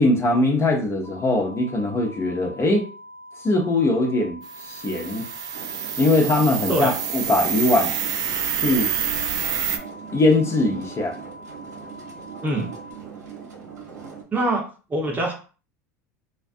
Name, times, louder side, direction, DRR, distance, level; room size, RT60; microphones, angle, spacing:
voice 1, 0.0-2.8 3.4-5.3 6.0-7.9 8.6-8.9 10.1-11.1, left 2 dB, 30° left, 1 dB, 0.7 m, -21 dB
sound 1, 1.0-12.9, equal, 85° left, 0.7 m, -44 dB
sound 2, 4.4-9.8, right 8 dB, 45° right, 0.4 m, -27 dB
sound 3, 5.5-14.2, right 6 dB, 90° right, 0.8 m, -40 dB
voice 2, 14.3-14.6 14.9-15.3, right 1 dB, 20° right, 1 dB, 0.7 m, -23 dB
2.4 x 2.2 x 2.5 m, 0.36 s
hypercardioid pair, 90°, 9 cm